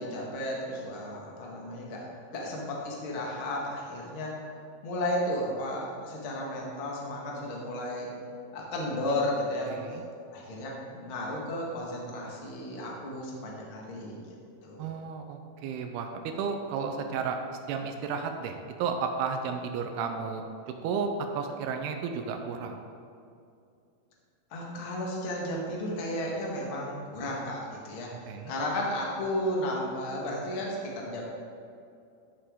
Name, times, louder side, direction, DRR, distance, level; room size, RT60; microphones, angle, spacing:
voice 1, 0.0-4.3 4.8-8.1 8.5-9.7 10.3-14.2 14.6-14.9 24.5-31.2, left 1 dB, 55° left, -2 dB, 1.4 m, -33 dB
voice 2, 9.7-10.0 14.8-17.4 17.7-20.4 20.8-22.8 28.3-28.5, right 5 dB, 85° right, 5 dB, 2.6 m, -33 dB
12.5 x 6.7 x 3.7 m, 2.5 s
omnidirectional pair, 4.6 m